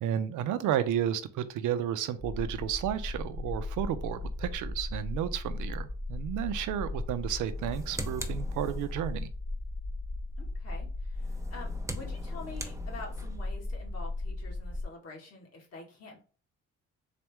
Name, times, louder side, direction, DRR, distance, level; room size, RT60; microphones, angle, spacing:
voice 1, 0.0-9.3, right 10 dB, 85° right, 11 dB, 0.6 m, -32 dB
sound 1, 2.2-14.8, left 2 dB, 15° left, 1.1 m, -36 dB
sound 2, 7.5-9.2 11.1-13.5, right 2 dB, 10° right, 0.6 m, -43 dB
voice 2, 10.4-16.2, left 3 dB, 55° left, -1 dB, 1.9 m, -47 dB
4.0 x 3.0 x 3.4 m, 0.38 s
cardioid pair, 90°, 30 cm